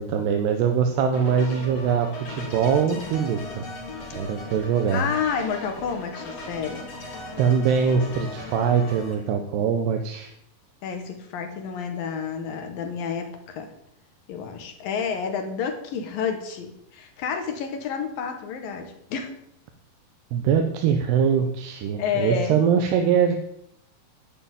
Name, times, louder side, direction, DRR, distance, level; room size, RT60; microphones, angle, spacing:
voice 1, 0.0-3.7 4.1-5.0 7.4-10.3 20.3-23.4, right 7 dB, 85° right, 5 dB, 3.1 m, -22 dB
sound 1, 1.1-9.1, left 2 dB, 40° left, 3.9 m, -38 dB
voice 2, 4.9-6.9 10.8-13.7 14.3-19.3 22.0-22.6, left 6 dB, 65° left, 6 dB, 3.2 m, -30 dB
11.5 x 8.1 x 9.0 m, 0.75 s
omnidirectional pair, 4.6 m